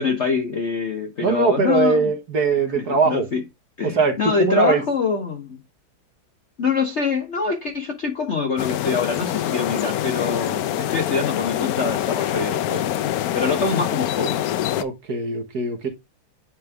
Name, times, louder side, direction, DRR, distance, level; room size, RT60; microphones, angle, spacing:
voice 1, 0.0-2.1 3.0-3.4 3.8-5.6 6.6-14.4, left 5 dB, 50° left, 0.8 m, -25 dB
voice 2, 1.2-3.3 3.8-4.8 14.8-15.9, right 4 dB, 55° right, 1.7 m, -21 dB
sound 1, 8.6-14.8, left 12 dB, 90° left, 0.8 m, -25 dB
9.2 x 3.5 x 3.4 m
omnidirectional pair, 2.2 m